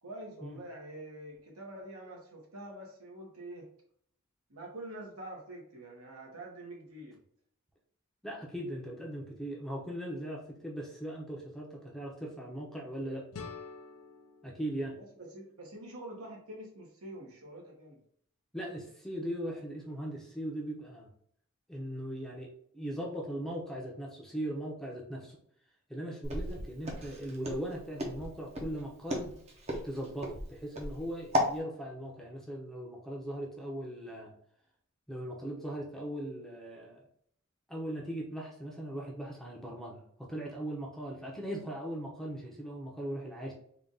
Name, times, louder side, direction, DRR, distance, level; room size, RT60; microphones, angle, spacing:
voice 1, 0.0-3.7 4.5-7.2 15.0-18.0, right 1 dB, 80° right, -2 dB, 1.4 m, -46 dB
voice 2, 8.2-13.2 14.4-15.0 18.5-21.1 21.7-25.4 25.9-29.4 29.8-34.3 35.1-37.1 37.7-43.5, right 1 dB, ahead, -2 dB, 0.7 m, -39 dB
sound 1, 13.3-16.2, left 5 dB, 80° left, 0.5 m, -49 dB
Walk footsteps, 26.2-31.6, equal, 30° right, 0.8 m, -34 dB
3.7 x 2.5 x 3.9 m, 0.64 s
head